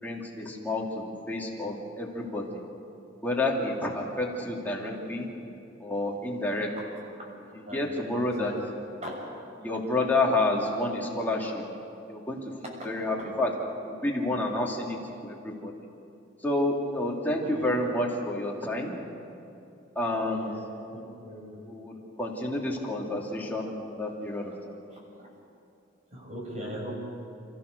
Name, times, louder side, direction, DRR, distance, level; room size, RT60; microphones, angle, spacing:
voice 1, 0.0-2.6 3.2-5.3 5.8-6.7 7.5-8.5 9.6-11.6 12.1-12.4 12.8-13.5 13.8-15.7 16.4-19.0 19.9-20.5 21.6-21.9 22.2-24.8, left 2 dB, 10° left, -3 dB, 3.0 m, -29 dB
voice 2, 7.5-7.9 8.3-8.5 9.0-9.1 17.4-17.7 20.3-20.6 20.9-21.6 25.2-25.3 26.1-26.9, equal, 35° right, -2 dB, 6.8 m, -40 dB
30.0 x 14.5 x 6.9 m, 2.7 s
head